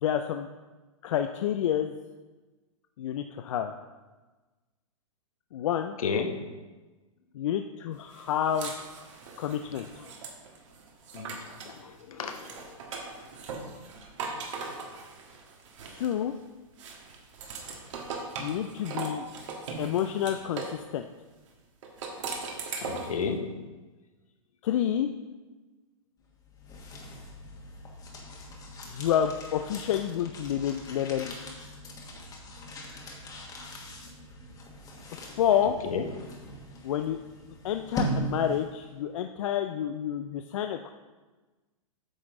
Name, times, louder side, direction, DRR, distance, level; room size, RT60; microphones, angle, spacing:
voice 1, 0.0-0.5 1.0-1.9 3.0-3.7 5.5-6.0 7.3-8.7 9.4-9.9 15.9-16.3 18.4-19.3 19.8-21.1 24.6-25.1 28.9-31.3 35.1-35.7 36.8-37.2 37.6-40.9, left 10 dB, 65° left, 6 dB, 0.5 m, -29 dB
voice 2, 6.0-6.3 9.7-10.1 11.1-12.6 22.8-23.6 35.8-36.1, left 5 dB, 80° left, 5 dB, 1.1 m, -33 dB
sound 1, 8.1-11.8 12.2-16.4 16.8-20.8 21.8-23.2, right 4 dB, 60° right, 1.6 m, -39 dB
sound 2, 26.3-38.9, equal, 20° left, 1.3 m, -40 dB
8.9 x 5.9 x 3.7 m, 1.2 s
hypercardioid pair, 125°, 18 cm